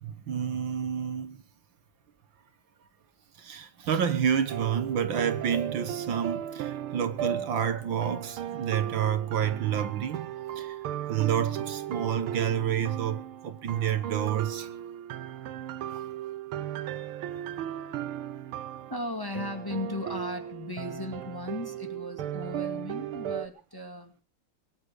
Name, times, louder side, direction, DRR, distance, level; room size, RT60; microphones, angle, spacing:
voice 1, 0.0-1.4 3.4-10.8 11.1-14.7 15.9-16.0, right 8 dB, 70° right, 1.9 m, -29 dB
sound 1, 4.5-23.5, right 11 dB, 85° right, 1.8 m, -36 dB
voice 2, 18.9-24.1, left 2 dB, 10° left, 2.3 m, -36 dB
22.5 x 9.1 x 6.4 m
omnidirectional pair, 2.3 m